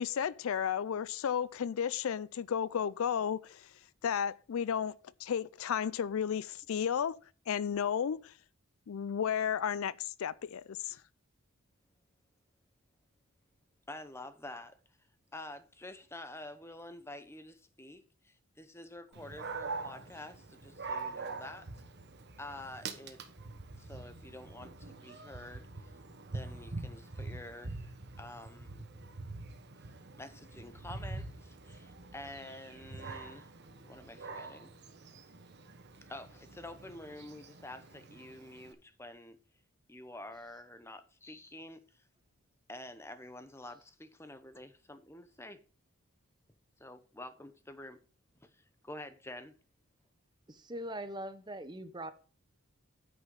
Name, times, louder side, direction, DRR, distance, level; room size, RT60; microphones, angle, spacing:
voice 1, 0.0-3.7 4.0-4.9 5.2-7.2 7.5-8.3 8.9-11.0, left 8 dB, 65° left, 0.4 m, -33 dB
voice 2, 13.9-14.8 15.3-21.7 22.4-23.2 23.7-25.9 26.3-28.8 30.2-33.5 33.9-34.7 36.1-39.4 39.9-42.0 42.7-45.6 46.8-48.0 48.4-49.5, left 1 dB, 10° left, 0.8 m, -48 dB
Dog, 19.1-38.7, right 3 dB, 50° right, 1.2 m, -45 dB
voice 3, 50.5-52.1, right 1 dB, 20° right, 0.8 m, -41 dB
9.8 x 5.6 x 5.3 m
head